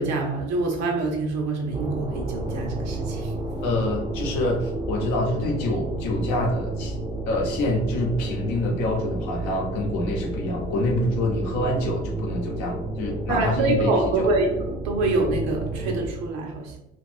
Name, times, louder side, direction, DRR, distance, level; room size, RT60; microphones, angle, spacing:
voice 1, 0.0-3.3 13.3-14.5 14.8-16.8, right 2 dB, 55° right, 2 dB, 0.7 m, -25 dB
sound 1, 1.7-16.1, right 2 dB, 10° right, 0.6 m, -31 dB
voice 2, 3.6-6.9 7.3-14.3, left 1 dB, 60° left, 0 dB, 0.8 m, -26 dB
2.4 x 2.4 x 3.5 m, 0.87 s
figure-of-eight pair, 50°, 32 cm